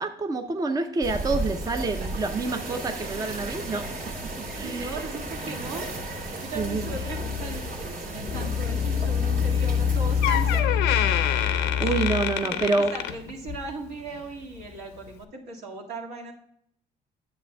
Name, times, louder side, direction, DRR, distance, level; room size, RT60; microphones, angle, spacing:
voice 1, 0.0-3.9 4.6-5.0 6.6-6.9 11.3-12.9, right 3 dB, 20° right, 5 dB, 0.6 m, -28 dB
sound 1, 1.0-10.6, right 2 dB, 60° right, 2.5 m, -34 dB
voice 2, 4.6-10.9 11.8-12.0 12.4-16.3, right 3 dB, 75° right, -2 dB, 1.9 m, -38 dB
sound 2, 6.5-7.7 8.3-12.4, left 7 dB, 45° left, 0.5 m, -26 dB
Door, 9.8-9.9 10.2-13.7 14.1-14.4 15.1-15.2, left 11 dB, 85° left, 0.7 m, -27 dB
10.0 x 7.5 x 2.3 m, 0.71 s
cardioid pair, 110°, 17 cm